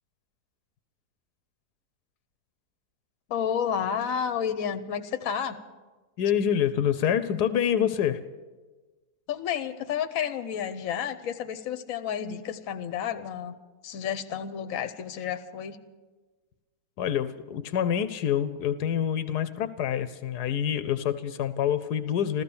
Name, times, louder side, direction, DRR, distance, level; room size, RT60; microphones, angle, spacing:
voice 1, 3.3-5.6 9.3-13.5 13.8-15.8, left 8 dB, 60° left, 10 dB, 1.2 m, -31 dB
voice 2, 6.2-8.2 17.0-22.4, left 9 dB, 80° left, 12 dB, 1.2 m, -26 dB
14.5 x 14.0 x 6.9 m, 1.3 s
omnidirectional pair, 1.7 m